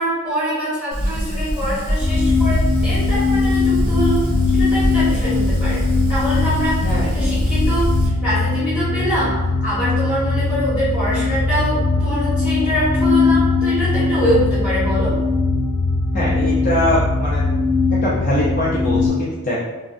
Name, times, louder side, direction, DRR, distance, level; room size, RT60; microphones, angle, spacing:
voice 1, 0.0-5.8 6.1-9.3 9.6-15.1, equal, 5° right, -13 dB, 1.3 m, -24 dB
Fire, 0.9-8.1, equal, 80° right, 0.7 m, -24 dB
sound 1, 2.0-19.1, left 3 dB, 60° left, 0.8 m, -20 dB
voice 2, 16.1-17.4 18.0-19.6, left 1 dB, 35° left, -7 dB, 0.4 m, -22 dB
2.4 x 2.3 x 2.5 m, 1.2 s
head